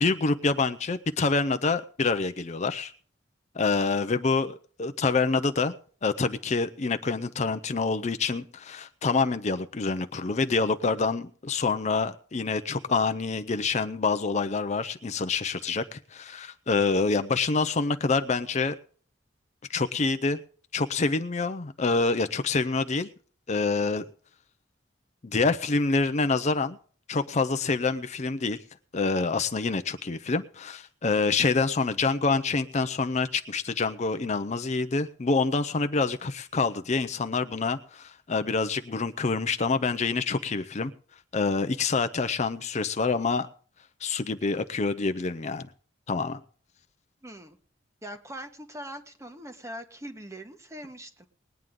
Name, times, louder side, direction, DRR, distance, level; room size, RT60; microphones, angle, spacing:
voice 1, 0.0-2.9 3.5-5.7 6.0-18.8 19.7-20.4 20.7-23.1 23.5-24.1 25.2-26.8 27.1-28.6 28.9-40.9 41.3-43.5 44.0-45.7 46.1-46.4, left 4 dB, 40° left, 0.6 m, -26 dB
voice 2, 47.2-47.6 48.0-51.3, equal, 15° right, 1.2 m, -42 dB
20.0 x 9.3 x 3.7 m
head